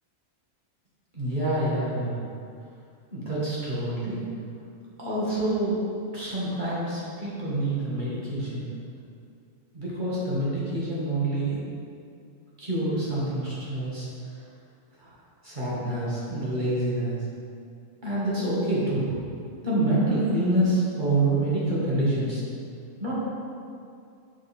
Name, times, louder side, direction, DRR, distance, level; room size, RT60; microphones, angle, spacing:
voice 1, 1.1-2.2 3.1-4.2 5.0-5.8 6.1-8.7 9.7-11.6 12.6-14.1 15.0-15.1 15.4-17.2 18.0-19.2 19.6-22.4 23.0-23.2, right 1 dB, 35° right, -8 dB, 1.8 m, -27 dB
6.3 x 5.2 x 4.3 m, 2.5 s
omnidirectional pair, 1.5 m